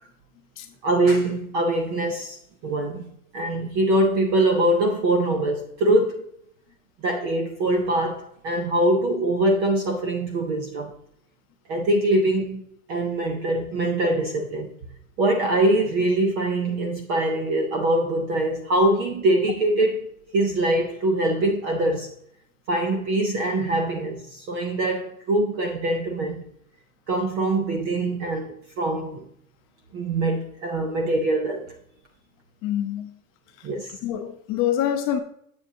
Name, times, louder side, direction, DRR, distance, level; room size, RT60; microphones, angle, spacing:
voice 1, 0.8-3.0 3.3-6.2 7.0-10.9 11.7-12.6 12.9-14.7 15.2-20.1 20.3-22.1 22.7-26.4 27.1-29.3 29.9-31.7 33.6-34.0, right 1 dB, 25° right, 0.5 m, -23 dB
voice 2, 32.6-33.1 34.0-35.2, left 10 dB, 30° left, 0.8 m, -25 dB
7.6 x 7.3 x 2.7 m
supercardioid pair, 150°, 45 cm